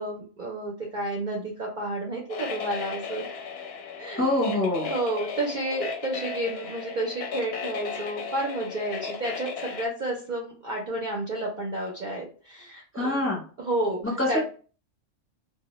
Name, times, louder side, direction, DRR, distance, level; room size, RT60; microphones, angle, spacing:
voice 1, 0.0-3.2 4.0-4.3 4.8-13.2 13.6-14.4, right 1 dB, 55° right, -1 dB, 0.5 m, -31 dB
sound 1, 2.3-9.9, left 5 dB, 65° left, 0.7 m, -35 dB
voice 2, 4.2-4.9 12.9-13.4 14.0-14.4, left 2 dB, 15° left, -3 dB, 0.6 m, -25 dB
2.1 x 2.1 x 2.9 m, 0.39 s
omnidirectional pair, 1.3 m